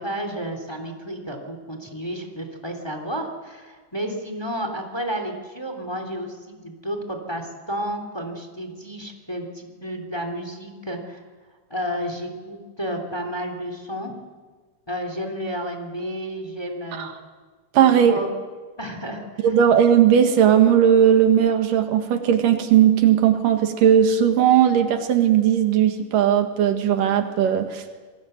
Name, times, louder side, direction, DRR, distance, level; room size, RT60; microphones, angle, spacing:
voice 1, 0.0-11.2 11.7-14.1 14.9-17.1 17.8-18.3 18.8-19.5, equal, 10° left, 5 dB, 2.8 m, -31 dB
voice 2, 17.7-18.2 19.4-27.8, right 9 dB, 90° right, 6 dB, 3.4 m, -17 dB
27.5 x 20.5 x 8.1 m, 1.4 s
omnidirectional pair, 3.7 m